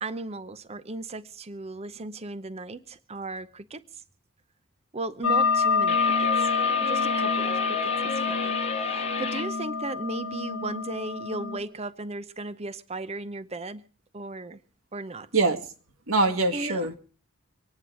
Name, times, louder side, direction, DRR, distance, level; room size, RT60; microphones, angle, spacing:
voice 1, 0.0-3.8 4.9-6.5 6.8-13.8 14.1-14.6 14.9-15.3 16.5-16.9, right 2 dB, 30° right, 0.8 m, -36 dB
sound 1, 5.2-11.6, left 5 dB, 65° left, 1.2 m, -27 dB
sound 2, 5.9-9.5, left 5 dB, 30° left, 1.0 m, -32 dB
voice 2, 16.1-17.0, right 3 dB, 70° right, 1.8 m, -23 dB
25.5 x 9.7 x 4.8 m
head